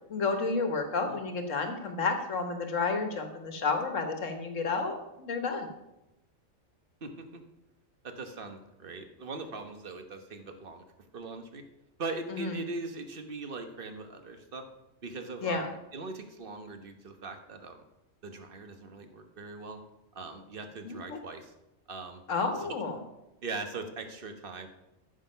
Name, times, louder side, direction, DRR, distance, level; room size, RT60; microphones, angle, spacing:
voice 1, 0.1-5.7 12.3-12.5 15.4-15.7 20.8-21.2 22.3-23.0, left 4 dB, 80° left, 5 dB, 1.7 m, -31 dB
voice 2, 7.0-7.4 8.0-10.8 11.1-11.6 12.0-14.6 15.0-17.8 18.2-19.8 20.1-21.5 21.9-22.2 22.5-22.7 23.4-24.7, right 3 dB, 45° right, 6 dB, 1.3 m, -40 dB
14.0 x 6.3 x 5.6 m, 0.92 s
omnidirectional pair, 1.3 m